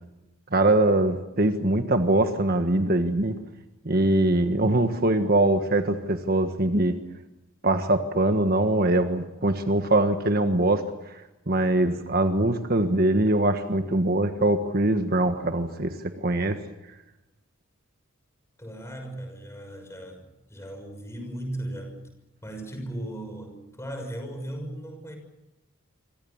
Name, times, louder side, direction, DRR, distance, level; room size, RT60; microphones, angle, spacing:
voice 1, 0.5-3.4 3.8-7.0 7.6-16.6, right 1 dB, 45° right, 7 dB, 1.5 m, -23 dB
voice 2, 18.6-22.0 22.4-25.2, right 1 dB, 15° left, 5 dB, 6.3 m, -37 dB
27.0 x 24.5 x 7.3 m, 0.97 s
head